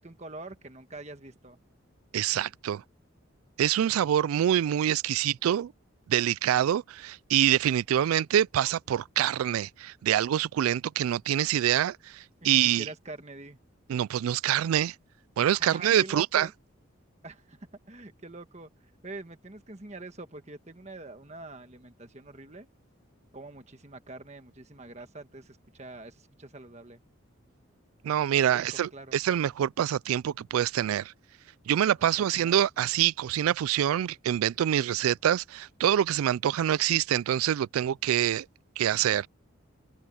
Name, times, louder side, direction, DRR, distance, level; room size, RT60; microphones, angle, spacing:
voice 1, 0.0-1.6 12.4-13.6 15.5-16.5 17.2-17.6 17.9-18.7 19.0-22.7 23.3-27.0 28.4-29.2 32.2-32.6, right 2 dB, 30° right, 1.4 m, -44 dB
voice 2, 2.1-2.8 3.6-5.7 6.1-12.9 13.9-14.9 15.4-16.5 28.0-31.1 31.7-38.5 38.8-39.3, right 10 dB, 90° right, 0.3 m, -25 dB
head